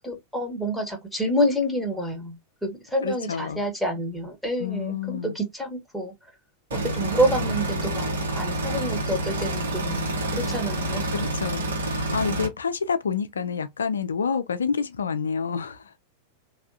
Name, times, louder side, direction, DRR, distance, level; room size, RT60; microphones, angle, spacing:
voice 1, 0.0-6.1 6.7-8.1 8.3-10.1 10.3-11.1, equal, ahead, 1.0 m, -28 dB
voice 2, 3.0-3.6 4.6-5.4 11.1-15.9, left 6 dB, 70° left, 0.4 m, -28 dB
sound 1, 6.7-12.5, right 1 dB, 65° right, 0.9 m, -28 dB
3.3 x 2.3 x 2.6 m
figure-of-eight pair, 90°, 0 cm